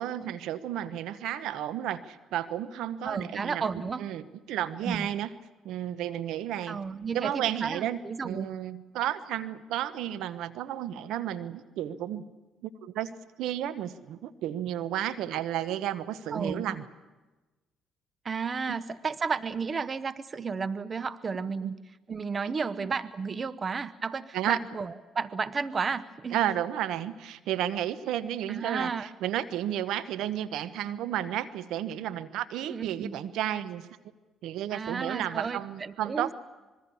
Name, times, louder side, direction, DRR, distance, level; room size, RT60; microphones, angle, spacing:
voice 1, 0.0-3.6 4.0-5.3 5.6-6.8 7.1-8.0 8.2-12.2 12.6-16.8 21.6-21.7 22.4-22.9 24.3-24.6 26.3-33.9 34.4-36.3, right 11 dB, 75° right, 12 dB, 1.1 m, -32 dB
voice 2, 3.0-4.1 4.8-5.1 6.7-8.5 16.3-16.8 18.2-21.7 22.1-26.4 28.5-29.1 32.7-33.2 34.7-36.3, right 5 dB, 40° right, 15 dB, 0.8 m, -33 dB
25.5 x 22.0 x 7.1 m, 1.2 s
supercardioid pair, 65°, 0 cm